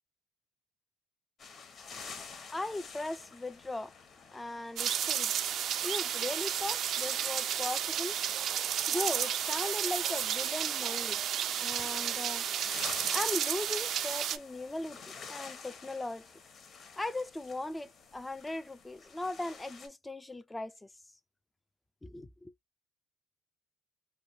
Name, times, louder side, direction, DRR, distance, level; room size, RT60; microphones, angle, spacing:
sound 1, 1.4-19.9, left 5 dB, 40° left, 1.0 m, -49 dB
voice 1, 2.5-3.9 4.3-5.3 5.8-8.2 8.9-11.2 11.6-12.4 13.1-16.3 17.0-20.9 22.0-22.5, left 2 dB, 10° left, 0.4 m, -38 dB
sound 2, 4.8-14.4, right 9 dB, 55° right, 0.4 m, -32 dB
3.2 x 2.2 x 2.6 m
cardioid pair, 120°, 0 cm